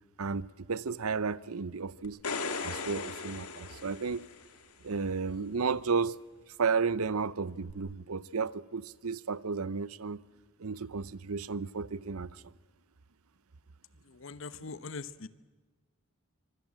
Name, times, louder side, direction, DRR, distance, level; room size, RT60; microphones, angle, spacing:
voice 1, 0.2-2.2 2.6-4.3 4.8-6.2 6.6-10.2 10.6-12.3, right 5 dB, 80° right, 0.8 m, -33 dB
sound 1, 2.0-4.6 7.7-7.8, left 4 dB, 90° left, 2.1 m, -37 dB
voice 2, 14.1-15.3, left 4 dB, 60° left, 1.0 m, -42 dB
25.5 x 24.0 x 7.6 m
head